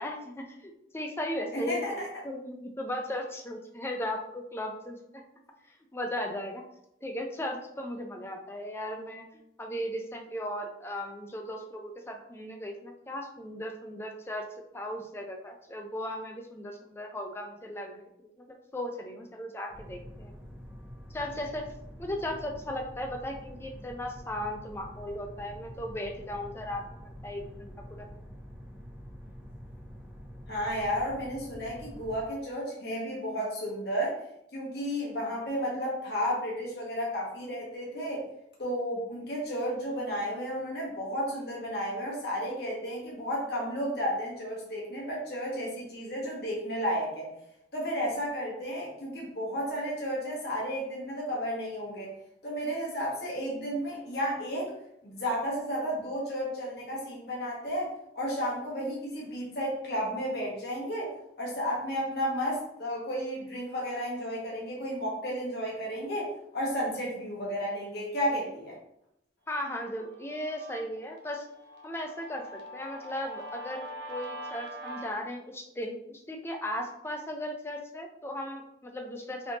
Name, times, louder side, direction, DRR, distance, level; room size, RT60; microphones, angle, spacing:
voice 1, 0.0-5.2 5.9-6.6 7.0-14.5 14.7-18.3 18.7-20.4 21.1-21.6 22.0-28.1 69.5-71.5 71.8-79.6, left 1 dB, 15° left, 3 dB, 0.3 m, -37 dB
voice 2, 1.5-2.1 30.5-34.2 34.5-38.2 38.6-47.3 47.7-52.1 52.4-54.7 55.0-61.1 61.4-68.8, equal, 55° left, -4 dB, 1.0 m, -32 dB
sound 1, 19.7-32.3, equal, 10° right, 0.9 m, -46 dB
Guitar, 69.6-75.1, right 1 dB, 70° right, 0.6 m, -44 dB
3.4 x 2.7 x 2.7 m, 0.79 s
head